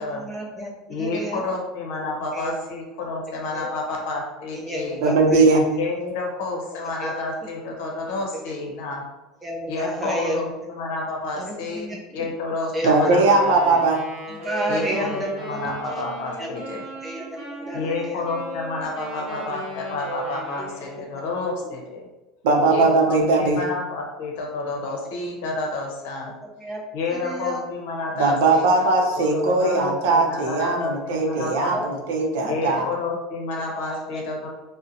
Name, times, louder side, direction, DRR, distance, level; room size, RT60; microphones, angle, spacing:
voice 1, 0.0-1.4 2.0-2.1 2.3-2.5 3.5-3.6 4.5-5.5 7.0-7.1 9.4-10.4 11.4-12.0 12.7-13.1 14.4-15.6 16.4-16.5 17.0-18.2 22.8-22.9 26.6-26.8 27.1-27.6 31.4-31.9 32.5-32.8 33.9-34.2, equal, 10° right, -2 dB, 0.5 m, -31 dB
voice 2, 0.9-5.0 5.8-9.0 9.7-13.4 14.7-16.8 17.7-22.1 22.7-26.3 26.9-31.8 32.4-34.5, left 3 dB, 70° left, 0 dB, 0.7 m, -30 dB
voice 3, 5.0-5.6 12.8-14.0 22.4-23.6 28.2-32.9, right 3 dB, 80° right, 1 dB, 0.5 m, -19 dB
Wind instrument woodwind instrument, 13.2-21.2, right 1 dB, 25° right, 1.1 m, -36 dB
2.7 x 2.1 x 2.5 m, 1.0 s
cardioid pair, 160°, 0 cm